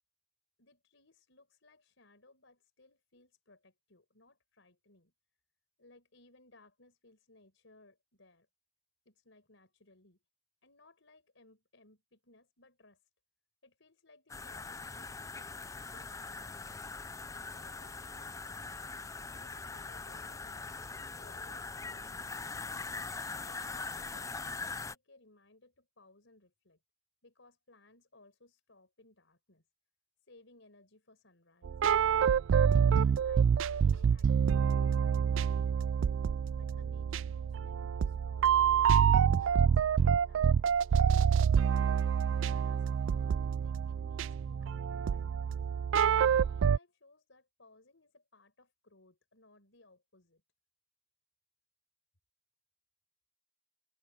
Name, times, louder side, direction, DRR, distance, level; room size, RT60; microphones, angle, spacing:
voice 1, 0.6-5.1 5.8-8.5 9.0-10.2 10.6-13.0 13.6-16.8 17.5-18.9 19.3-20.8 21.2-22.4 23.3-26.8 27.2-29.6 30.3-31.8 32.6-35.9 36.5-40.6 41.7-45.4 46.2-50.4, left 2 dB, 75° left, 5.1 m, -63 dB
sound 1, 14.3-24.9, left 4 dB, 15° left, 0.4 m, -42 dB
sound 2, 31.6-46.8, right 7 dB, 70° right, 0.3 m, -27 dB
head